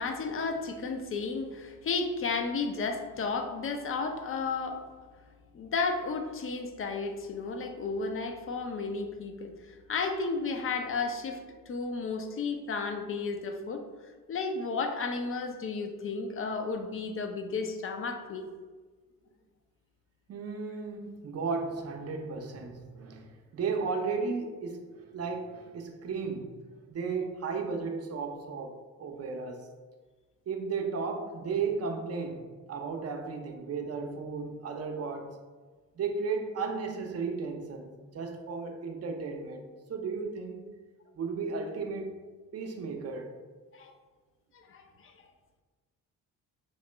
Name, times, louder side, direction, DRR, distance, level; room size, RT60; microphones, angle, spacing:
voice 1, 0.0-4.8 5.5-11.4 11.7-13.8 14.3-18.5 43.7-43.9 44.5-45.1, left 4 dB, 40° left, 5 dB, 0.5 m, -33 dB
voice 2, 20.3-29.7 30.5-35.4 35.9-40.7 41.1-42.3 42.5-43.4, right 4 dB, 45° right, 4 dB, 0.6 m, -35 dB
3.1 x 2.8 x 4.3 m, 1.4 s
cardioid pair, 95°, 34 cm